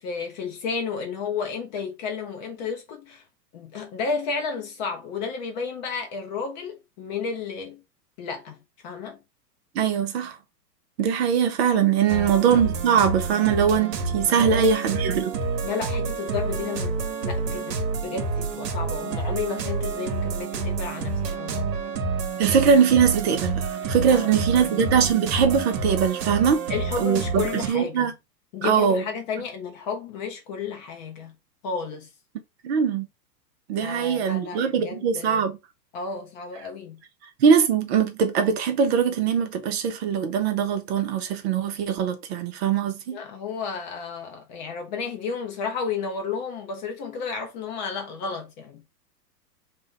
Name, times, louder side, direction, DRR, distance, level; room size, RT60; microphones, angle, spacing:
voice 1, 0.0-3.2 3.5-7.8 8.2-8.6 8.8-9.2 12.1-12.4 14.3-15.0 15.6-21.8 24.0-24.8 26.7-28.1 28.5-31.3 31.6-32.1 33.8-35.4 35.9-37.0 43.1-48.8, left 5 dB, 30° left, 0.5 m, -32 dB
voice 2, 9.8-10.4 11.0-15.4 22.4-26.6 27.0-28.1 28.6-29.0 32.6-33.1 33.7-35.6 37.4-43.2, right 7 dB, 40° right, 0.5 m, -22 dB
sound 1, 12.1-27.7, right 4 dB, 75° right, 0.8 m, -28 dB
2.6 x 2.1 x 3.7 m
hypercardioid pair, 115°, 50 cm